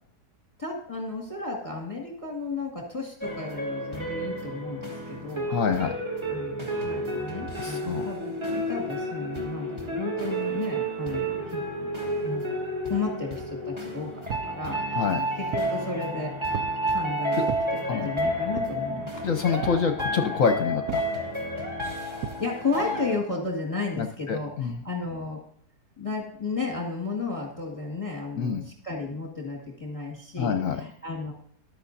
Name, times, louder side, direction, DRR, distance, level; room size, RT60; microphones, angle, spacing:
voice 1, 0.6-5.5 6.3-11.9 12.2-16.3 16.9-17.5 17.9-19.4 21.9-25.4 26.0-31.3, left 3 dB, 20° left, -1 dB, 1.9 m, -33 dB
sound 1, 3.2-23.2, right 1 dB, 15° right, 2.0 m, -31 dB
voice 2, 5.5-5.9 7.6-8.1 14.9-15.2 17.9-18.1 19.2-21.0 24.0-24.8 28.4-28.6 30.4-30.8, left 6 dB, 60° left, 6 dB, 1.1 m, -26 dB
sound 2, 14.3-14.6 15.1-15.8 16.5-16.8 17.5-17.7 18.6-18.9 19.6-19.9 20.9-21.1 22.2-22.4, right 10 dB, 75° right, 1.1 m, -36 dB
14.0 x 11.0 x 2.7 m, 0.66 s
omnidirectional pair, 1.7 m